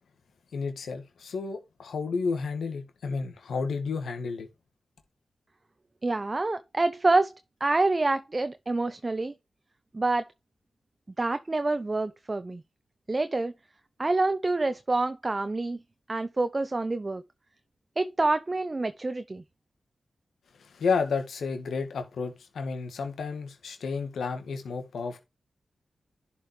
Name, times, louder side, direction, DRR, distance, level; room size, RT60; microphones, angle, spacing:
voice 1, 0.5-4.5 20.6-25.2, left 5 dB, 85° left, 2.0 m, -31 dB
voice 2, 6.0-7.3 7.6-9.3 9.9-10.3 11.2-12.6 13.1-13.5 14.0-15.8 16.1-17.2 18.0-19.4, right 2 dB, 35° right, 0.8 m, -27 dB
11.0 x 5.5 x 3.3 m
cardioid pair, 50°, 0 cm